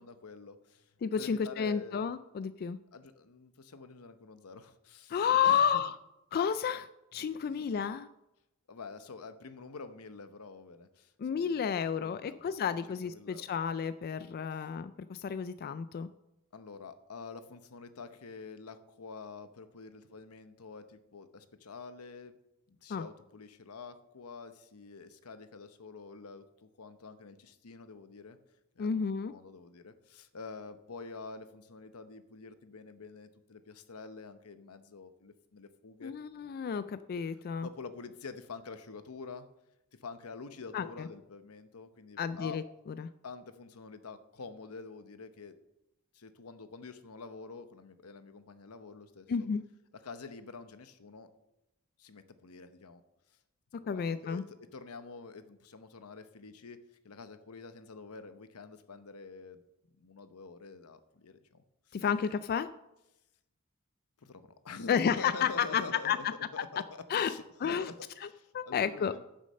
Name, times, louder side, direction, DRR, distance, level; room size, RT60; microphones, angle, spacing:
voice 1, 0.0-0.9 1.2-2.0 2.9-5.8 7.4-7.6 8.7-11.7 11.9-12.5 12.9-13.5 16.5-22.4 22.7-28.4 28.8-36.1 37.6-39.5 39.9-42.6 43.2-45.6 46.1-49.5 50.0-51.3 52.0-53.0 53.7-59.6 60.0-62.0 64.2-68.0 68.2-69.3, left 4 dB, 85° left, 10 dB, 0.8 m, -47 dB
voice 2, 1.0-2.8 5.1-5.9 6.3-6.9 7.1-8.1 11.2-16.1 22.9-23.1 28.8-29.3 36.0-37.7 40.7-40.9 42.2-42.6 43.0-43.1 49.3-49.6 53.9-54.4 61.9-62.7 64.9-66.2 67.1-67.3 67.6-67.9 68.2-68.3 68.5-69.1, left 7 dB, 45° left, 13 dB, 0.3 m, -31 dB
9.8 x 6.4 x 6.5 m, 0.91 s
head